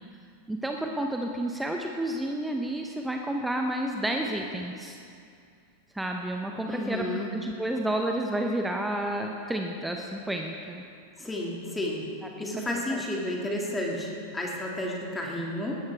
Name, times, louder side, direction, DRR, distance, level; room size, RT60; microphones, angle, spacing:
voice 1, 0.5-5.0 5.9-7.1 7.3-10.8 12.4-13.0, right 1 dB, 5° right, 2 dB, 1.0 m, -30 dB
voice 2, 6.7-7.3 11.2-12.1 12.4-15.8, left 1 dB, 10° left, -2 dB, 2.4 m, -32 dB
19.5 x 13.5 x 3.5 m, 2.3 s
figure-of-eight pair, 90°, 0 cm